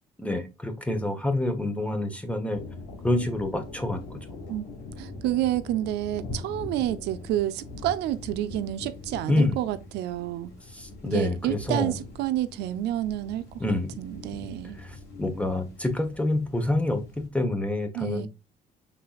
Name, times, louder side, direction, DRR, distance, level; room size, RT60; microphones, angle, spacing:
voice 1, 0.2-2.6 3.0-4.2 9.3-9.6 10.7-11.9 13.6-13.9 14.8-18.3, left 2 dB, 5° left, 1.1 m, -27 dB
sound 1, 2.5-17.3, left 2 dB, 80° left, 2.3 m, -42 dB
voice 2, 5.0-10.5 11.0-13.5 14.0-14.8 17.9-18.3, right 13 dB, 80° right, 0.5 m, -29 dB
5.4 x 3.7 x 2.4 m
cardioid pair, 110°, 17 cm